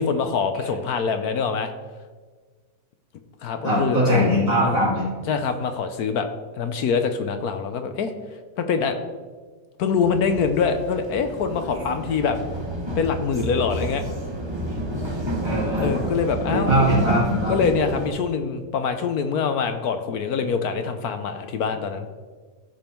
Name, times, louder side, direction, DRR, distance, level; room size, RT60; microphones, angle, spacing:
voice 1, 0.0-1.7 3.4-4.3 4.6-4.8 5.3-6.3 6.6-8.1 8.6-9.0 9.8-12.4 13.0-14.0 15.8-16.7 17.5-22.1, left 5 dB, 65° left, 8 dB, 1.2 m, -24 dB
voice 2, 3.6-5.0 15.4-15.9 16.5-17.6, equal, 45° right, -8 dB, 3.2 m, -21 dB
sound 1, 10.0-18.1, equal, 20° right, 1.1 m, -29 dB
15.0 x 5.3 x 4.5 m, 1.4 s
omnidirectional pair, 1.9 m